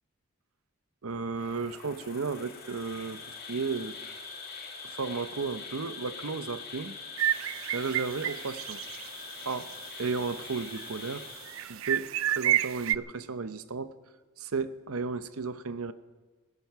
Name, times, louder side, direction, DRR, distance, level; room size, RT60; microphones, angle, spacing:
voice 1, 1.0-4.0 4.8-7.0 7.7-8.8 9.5-9.7 10.0-11.3 11.7-13.9 14.4-15.9, right 4 dB, 90° right, 12 dB, 0.8 m, -34 dB
Insect, 1.3-12.1, left 5 dB, 45° left, 2.7 m, -44 dB
sound 1, 7.2-9.1 9.4-9.5 10.0-10.9 11.5-13.0, right 12 dB, 65° right, 0.4 m, -30 dB
18.5 x 17.0 x 4.7 m, 1.3 s
head